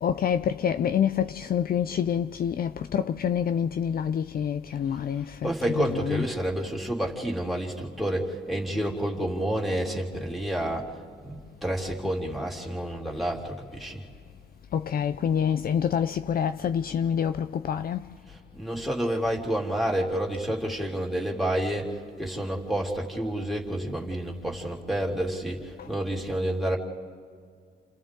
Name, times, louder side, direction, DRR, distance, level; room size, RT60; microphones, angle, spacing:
voice 1, 0.0-6.2 14.7-18.1 25.8-25.9, left 8 dB, 50° left, 0.5 m, -27 dB
voice 2, 5.4-14.0 18.3-26.8, right 1 dB, ahead, 2.9 m, -29 dB
29.5 x 27.5 x 3.7 m
cardioid pair, 90°, 20 cm